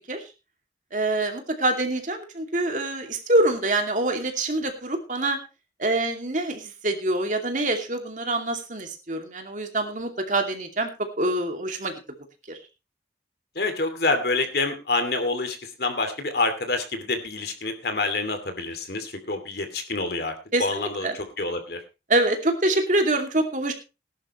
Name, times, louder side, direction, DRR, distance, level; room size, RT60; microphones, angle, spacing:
voice 1, 0.9-5.4 5.8-10.9 11.2-11.9 12.5-12.6 20.5-21.1 22.1-23.7, right 2 dB, 45° right, 4 dB, 2.5 m, -25 dB
voice 2, 13.5-20.3 20.6-21.8, left 3 dB, 65° left, 7 dB, 2.7 m, -27 dB
19.0 x 11.0 x 3.2 m, 0.29 s
head